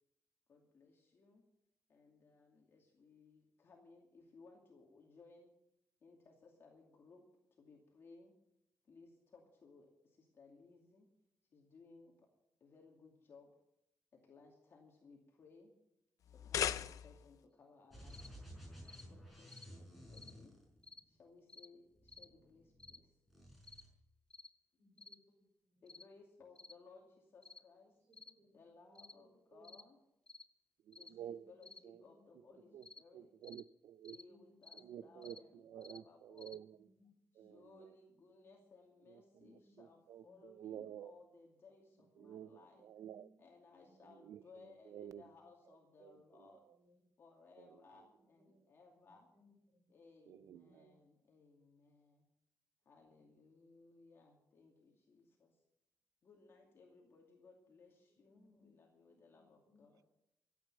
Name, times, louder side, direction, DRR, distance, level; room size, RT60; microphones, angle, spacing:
voice 1, 0.5-1.4 1.9-5.5 6.0-7.3 7.6-8.4 8.8-11.1 11.5-12.3 12.6-13.6 14.1-15.7 16.3-18.4 19.1-20.5 21.0-23.2 25.0-25.1 25.8-28.0 28.2-30.0 30.9-33.3 34.1-36.5 37.3-42.8 43.4-46.6 47.2-49.3 49.9-52.2 52.8-55.6 56.2-60.0, left 4 dB, 45° left, 2.5 m, -63 dB
sound 1, 16.2-17.4, left 10 dB, 80° left, 0.6 m, -38 dB
sound 2, 17.9-21.2 21.9-23.0 23.3-23.9, equal, ahead, 5.0 m, -55 dB
sound 3, 18.1-18.3 18.9-19.1 19.5-19.7 20.1-20.4 20.8-21.1 21.5-21.7 22.1-22.3 22.8-23.0 23.6-23.9 24.3-24.5 25.0-25.2 25.9-26.1 26.6-26.8 27.4-27.6 28.1-28.4 29.0-29.2 29.6-29.9 30.3-30.5 30.9-31.1 31.6-31.8 32.8-33.0 33.4-33.6 34.1-34.3 34.6-34.9 35.2-35.4 35.8-36.0 36.4-36.6, left 3 dB, 15° left, 0.5 m, -56 dB
voice 2, 24.8-25.3 25.7-25.8 28.1-28.5 28.9-29.2 29.5-29.8 31.1-31.3 32.0-32.2 32.5-32.6 34.3-34.6 35.1-35.4 36.5-37.9 39.4-39.8 40.2-40.4 40.7-41.1 42.2-42.4 42.7-43.3 43.8-44.1 44.5-44.6 45.0-45.2 46.7-46.9 48.4-48.6 49.0-49.9 50.4-51.0 58.3-58.7 59.3-59.9, equal, 50° right, 6.2 m, -69 dB
voice 3, 30.9-31.5 31.8-32.0 32.7-32.9 33.1-34.2 34.8-36.9 37.4-37.9 39.1-41.1 42.2-43.3 44.1-44.4 44.9-45.2 46.0-46.7 47.6-47.8 50.3-50.9, right 10 dB, 85° right, 0.6 m, -52 dB
14.0 x 8.7 x 9.2 m
wide cardioid pair, 160°, 6 cm